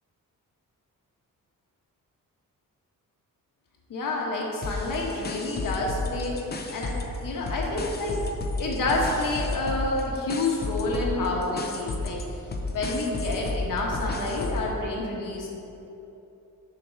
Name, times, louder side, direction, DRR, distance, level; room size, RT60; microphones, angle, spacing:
voice 1, 3.9-6.4 6.7-7.0 7.2-8.2 8.6-12.2 12.7-15.5, left 2 dB, 70° left, -2 dB, 1.2 m, -28 dB
sound 1, 4.6-7.2 7.5-14.7, left 2 dB, 30° left, 0.5 m, -32 dB
6.9 x 3.9 x 6.3 m, 3.0 s
wide cardioid pair, 160°, 34 cm